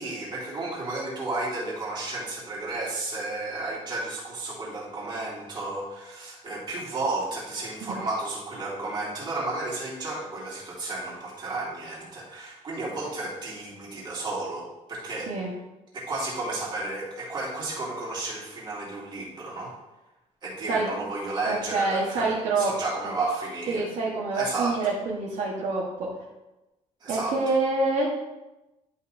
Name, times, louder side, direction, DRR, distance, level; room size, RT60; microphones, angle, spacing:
voice 1, 0.0-15.3 15.9-19.7 20.4-23.8 24.3-24.8 27.0-27.3, right 2 dB, 35° right, -6 dB, 2.5 m, -32 dB
voice 2, 21.5-22.7 23.0-23.1 23.7-26.1 27.1-28.1, right 3 dB, 60° right, -5 dB, 1.4 m, -26 dB
10.5 x 5.6 x 2.7 m, 1.0 s
cardioid pair, 165°, 14 cm